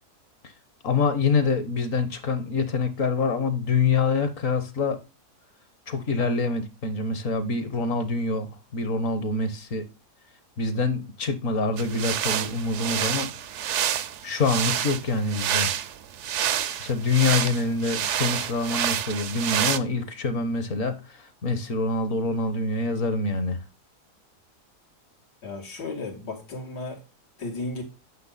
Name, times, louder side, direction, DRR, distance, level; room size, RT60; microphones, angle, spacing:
voice 1, 0.8-5.0 5.9-9.9 10.6-13.3 14.2-15.7 16.8-23.6, left 3 dB, 55° left, 1.4 m, -26 dB
sound 1, 11.8-19.8, right 10 dB, 65° right, 0.7 m, -28 dB
voice 2, 25.4-27.0 27.4-27.8, left 3 dB, 90° left, 2.9 m, -34 dB
9.5 x 6.2 x 4.1 m
omnidirectional pair, 1.7 m